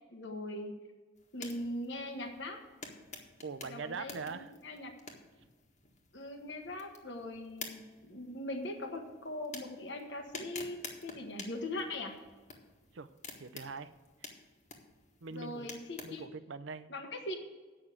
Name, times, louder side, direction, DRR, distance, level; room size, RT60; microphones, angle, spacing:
voice 1, 0.1-0.7 1.3-2.6 3.6-4.9 6.1-10.8 11.0-12.2 15.3-16.3 16.9-17.4, left 1 dB, 65° left, 4 dB, 1.3 m, -41 dB
sound 1, 1.2-16.3, left 4 dB, 40° left, 1.5 m, -51 dB
voice 2, 3.4-4.5 12.9-13.1 13.4-13.9 15.2-15.7 16.0-16.9, right 4 dB, 80° right, 13 dB, 0.6 m, -42 dB
8.9 x 6.1 x 7.8 m, 1.4 s
head